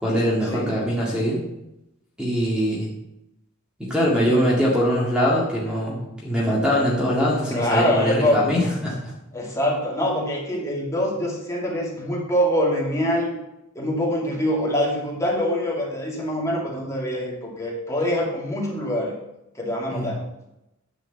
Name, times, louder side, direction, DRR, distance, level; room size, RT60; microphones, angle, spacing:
voice 1, 0.0-1.4 2.2-2.9 3.9-9.1 19.9-20.1, equal, 5° right, -5 dB, 2.0 m, -22 dB
voice 2, 7.5-8.4 9.3-13.4 13.7-19.1 19.6-20.2, equal, 15° left, -3 dB, 2.4 m, -24 dB
9.9 x 5.1 x 7.1 m, 0.88 s
head